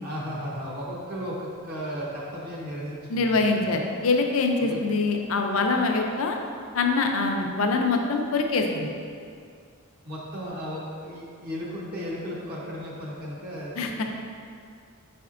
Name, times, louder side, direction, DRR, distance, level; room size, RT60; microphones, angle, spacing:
voice 1, 0.0-3.6 4.6-4.9 10.0-14.0, equal, 45° right, -5 dB, 0.7 m, -35 dB
voice 2, 3.1-6.4 6.7-8.9 13.8-14.0, left 3 dB, 70° left, 3 dB, 0.4 m, -24 dB
4.9 x 4.2 x 2.4 m, 2.3 s
head